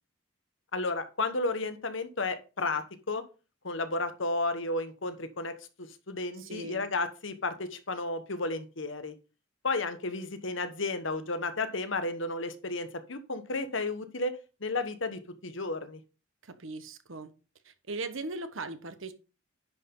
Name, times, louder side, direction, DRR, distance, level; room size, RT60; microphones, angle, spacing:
voice 1, 0.7-3.2 3.6-9.1 9.6-16.0, left 2 dB, 65° left, 1.2 m, -33 dB
voice 2, 6.4-6.9 16.4-17.3 17.6-19.1, right 2 dB, 75° right, 1.1 m, -39 dB
10.0 x 5.8 x 3.9 m
head